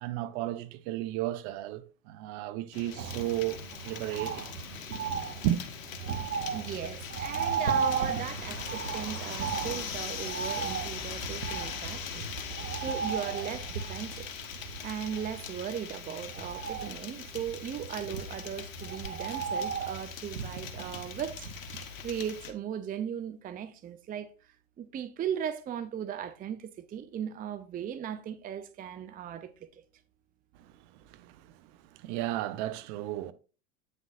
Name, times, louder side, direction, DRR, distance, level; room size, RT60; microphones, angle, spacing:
voice 1, 0.0-4.5 5.4-5.6 30.6-31.6 31.9-33.3, right 13 dB, 50° right, 0.8 m, -34 dB
sound 1, 2.7-22.5, left 7 dB, 65° left, 1.4 m, -41 dB
Bird, 3.0-22.1 22.4-22.5, right 6 dB, 90° right, 0.9 m, -36 dB
voice 2, 6.5-12.3 12.5-14.3 14.8-29.7, right 9 dB, 20° right, 0.6 m, -38 dB
8.8 x 6.5 x 2.6 m
hypercardioid pair, 80°, 42 cm